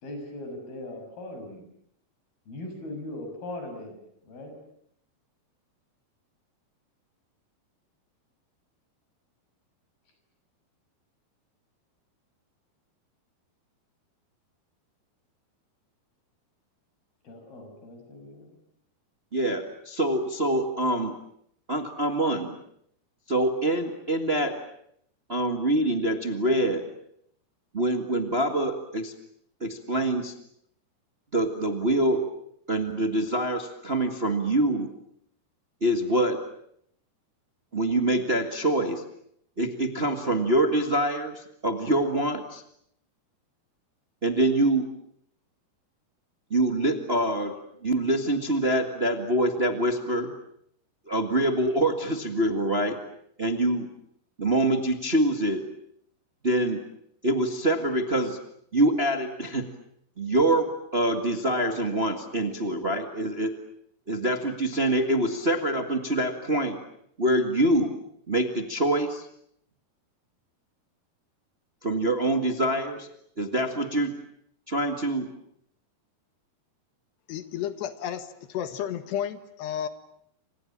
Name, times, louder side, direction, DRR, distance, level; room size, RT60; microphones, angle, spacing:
voice 1, 0.0-1.7 2.5-4.6 17.2-18.6, left 1 dB, 65° left, 5 dB, 8.5 m, -40 dB
voice 2, 19.3-21.1 21.7-22.6 23.3-24.6 25.3-26.9 27.7-29.1 29.6-30.3 31.3-32.2 32.7-34.9 35.8-36.4 37.7-39.0 39.6-42.6 44.2-44.9 46.5-50.3 51.1-53.0 53.4-53.9 54.4-55.6 56.4-56.8 57.2-58.4 58.7-59.7 60.2-63.5 64.1-66.8 67.2-68.0 68.3-69.3 71.8-73.1 73.4-74.1 74.7-75.3, right 1 dB, 55° right, 5 dB, 0.6 m, -25 dB
voice 3, 77.3-79.9, left 10 dB, 85° left, 10 dB, 3.7 m, -32 dB
28.5 x 26.0 x 7.4 m, 0.71 s
omnidirectional pair, 4.7 m